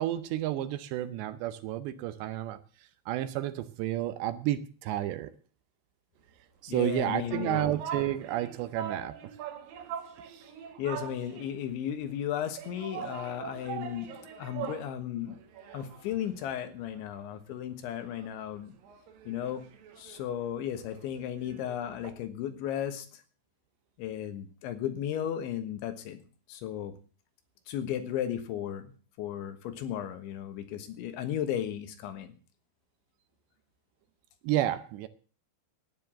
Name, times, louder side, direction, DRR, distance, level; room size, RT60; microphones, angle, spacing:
voice 1, 0.0-2.6 3.1-5.3 6.6-9.2 10.3-10.4 34.4-35.1, right 13 dB, 80° right, 2.8 m, -31 dB
voice 2, 6.7-7.7 10.8-14.1 14.4-15.4 15.7-18.8 19.3-19.6 20.0-23.2 24.0-26.9 27.7-28.9 29.2-32.4, left 10 dB, 80° left, 3.7 m, -35 dB
sound 1, 6.8-11.7 12.6-15.0 15.3-17.2 17.6-17.7 18.0-22.1, right 8 dB, 60° right, 2.9 m, -42 dB
12.0 x 9.7 x 7.6 m
omnidirectional pair, 5.4 m